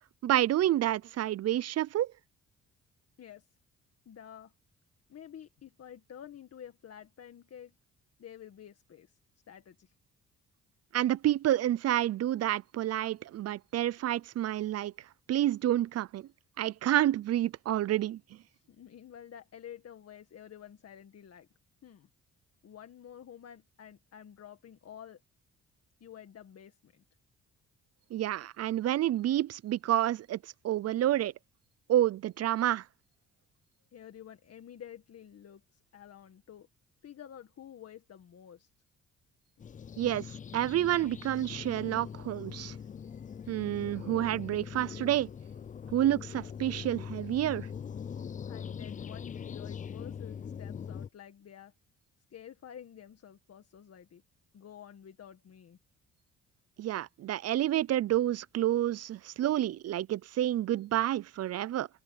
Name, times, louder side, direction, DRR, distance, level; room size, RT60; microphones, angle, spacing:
voice 1, 0.2-2.1 10.9-14.9 15.3-16.3 16.6-18.2 28.1-31.3 31.9-32.8 40.0-40.3 40.5-42.8 43.5-45.3 45.9-47.7 56.8-61.9, right 13 dB, 55° right, 0.5 m, -29 dB
voice 2, 3.2-3.5 4.1-4.5 5.1-7.7 8.2-9.2 9.5-9.9 18.5-21.5 21.8-22.1 22.6-25.2 26.0-27.0 33.9-36.7 37.0-38.7 48.0-51.7 52.3-54.2 54.5-55.8, left 9 dB, 55° left, 1.8 m, -50 dB
sound 1, 39.6-51.1, left 7 dB, 25° left, 0.4 m, -42 dB
cardioid pair, 90°, 30 cm